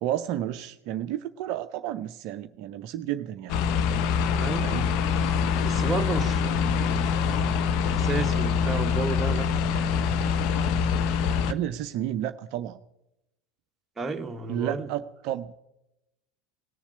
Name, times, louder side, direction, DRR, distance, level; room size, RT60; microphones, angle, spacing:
voice 1, 0.0-3.6 4.6-4.9 11.5-12.8 14.5-15.5, right 11 dB, 50° right, 9 dB, 0.5 m, -31 dB
sound 1, 3.5-11.5, left 6 dB, 50° left, 0.8 m, -25 dB
voice 2, 4.4-4.8 5.6-7.1 7.9-9.5 14.0-14.9, right 3 dB, 15° right, 5 dB, 1.2 m, -32 dB
18.0 x 7.2 x 9.7 m, 0.90 s
figure-of-eight pair, 75°, 0 cm